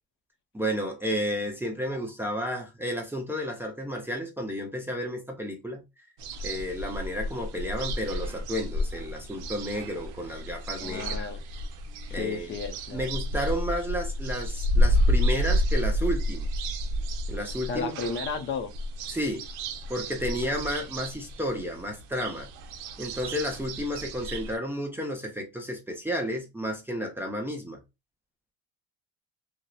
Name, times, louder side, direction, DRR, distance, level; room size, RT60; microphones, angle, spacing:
voice 1, 0.5-5.8 6.4-11.3 12.1-12.6 12.9-16.5 17.3-18.0 19.1-19.5 19.9-22.5 23.0-27.8, equal, 5° right, 0.5 m, -32 dB
sound 1, 6.2-24.6, equal, 75° right, 0.6 m, -30 dB
voice 2, 10.8-11.4 12.1-13.1 17.7-18.7, left 5 dB, 40° left, 0.5 m, -33 dB
2.7 x 2.0 x 2.3 m
cardioid pair, 120°, 32 cm